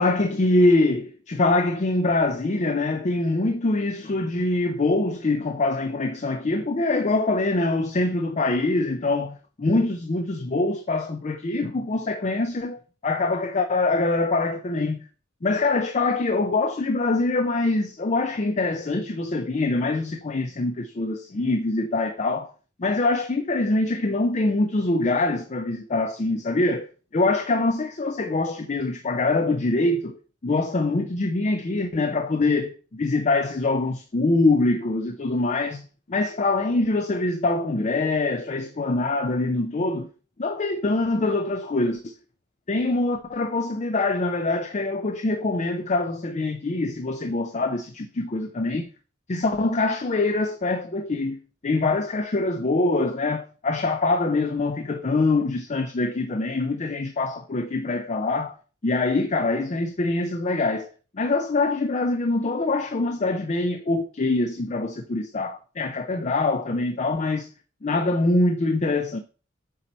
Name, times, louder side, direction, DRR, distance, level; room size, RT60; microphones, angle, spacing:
voice 1, 0.0-15.0 15.4-22.5 22.8-40.1 40.4-42.1 42.7-48.9 49.3-58.5 58.8-60.9 61.1-67.5 67.8-69.2, left 2 dB, 35° left, 0.5 m, -24 dB
7.5 x 4.1 x 4.2 m
head